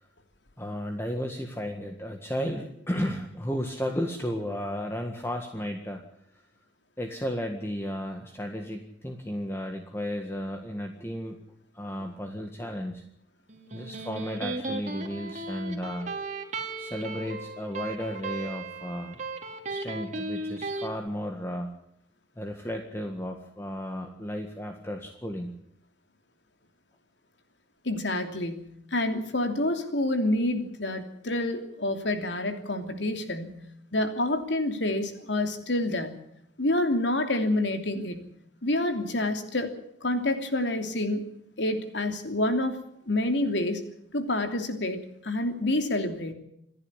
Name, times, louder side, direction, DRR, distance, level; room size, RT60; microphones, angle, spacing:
voice 1, 0.6-6.0 7.0-11.4 11.7-13.0 13.7-16.1 16.8-19.2 19.7-21.7 22.4-25.5, equal, 15° left, 4 dB, 1.7 m, -34 dB
Electric guitar, 13.5-20.9, right 2 dB, 45° right, 2.6 m, -36 dB
voice 2, 27.8-33.6 33.9-36.1 36.6-38.2 38.6-39.7 40.0-41.2 41.6-42.8 43.1-43.8 44.1-46.3, left 1 dB, 80° left, 6 dB, 3.1 m, -28 dB
27.5 x 11.0 x 9.9 m, 0.74 s
head